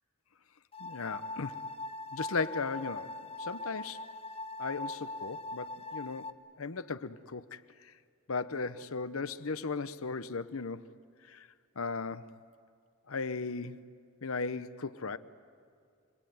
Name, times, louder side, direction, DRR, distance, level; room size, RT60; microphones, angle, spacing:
sound 1, 0.7-6.3, left 2 dB, 25° left, 0.8 m, -41 dB
voice 1, 0.8-1.6 2.1-3.1 3.4-4.0 4.6-6.3 6.6-7.6 8.3-10.9 11.3-11.5 11.8-12.3 13.1-13.8 14.2-15.2, left 4 dB, 80° left, 0.9 m, -36 dB
29.5 x 21.5 x 9.4 m
head